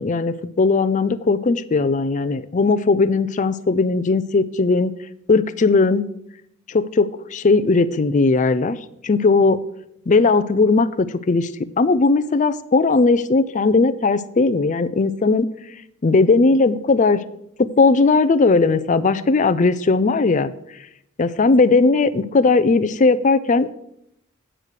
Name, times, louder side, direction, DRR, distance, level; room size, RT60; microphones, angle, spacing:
voice 1, 0.0-4.9 5.3-6.0 6.7-8.8 9.0-9.6 10.1-11.5 11.8-15.5 16.0-17.2 17.6-20.5 21.2-23.7, left 3 dB, 35° left, 11 dB, 0.4 m, -18 dB
8.8 x 6.4 x 6.6 m, 0.77 s
head